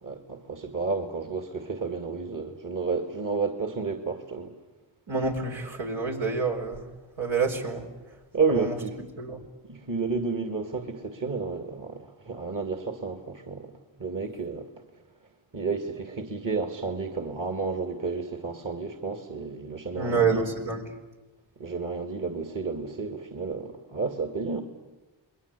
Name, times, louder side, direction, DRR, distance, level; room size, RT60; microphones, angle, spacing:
voice 1, 0.0-4.5 8.3-8.9 9.7-13.7 14.0-14.7 15.5-20.4 21.6-24.6, right 4 dB, 40° right, 2.4 m, -31 dB
voice 2, 5.1-6.9 7.2-7.9 8.5-8.8 9.2-9.4 19.9-20.8, right 4 dB, 75° right, 4.7 m, -27 dB
27.5 x 21.5 x 8.4 m
cardioid pair, 50°, 47 cm